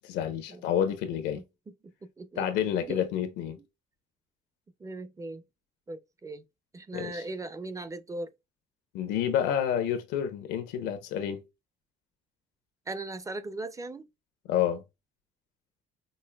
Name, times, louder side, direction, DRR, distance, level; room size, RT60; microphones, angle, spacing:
voice 1, 0.0-1.4 2.4-3.6 6.9-7.2 8.9-11.4 14.4-14.8, left 9 dB, 90° left, 0.9 m, -29 dB
voice 2, 1.3-2.5 2.8-3.0 4.8-5.4 5.9-6.4 6.7-8.3 12.9-14.1, right 2 dB, 20° right, 0.5 m, -39 dB
5.3 x 2.5 x 2.3 m
cardioid pair, 110°, 17 cm